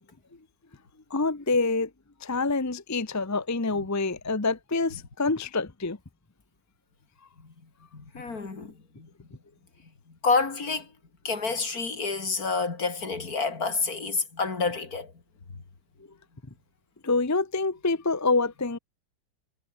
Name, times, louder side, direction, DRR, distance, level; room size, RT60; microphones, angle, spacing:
voice 1, 1.1-1.9 2.2-6.0 17.0-18.8, left 3 dB, 15° left, 0.8 m, -26 dB
voice 2, 7.9-9.1 10.2-10.9 11.2-15.1 15.5-15.6, left 4 dB, 55° left, 3.6 m, -29 dB
omnidirectional pair, 1.9 m